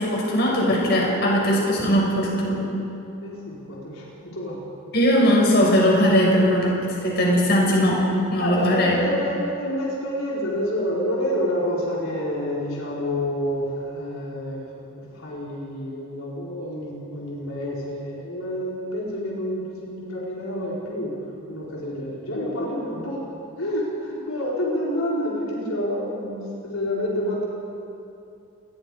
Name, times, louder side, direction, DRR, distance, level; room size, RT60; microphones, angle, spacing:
voice 1, 0.0-2.6 4.9-8.0 8.3-9.0, equal, 50° left, -3 dB, 6.0 m, -19 dB
voice 2, 3.2-4.6 8.4-23.2 23.6-27.4, equal, 85° left, -5 dB, 4.5 m, -28 dB
28.5 x 21.0 x 5.1 m, 2.7 s
head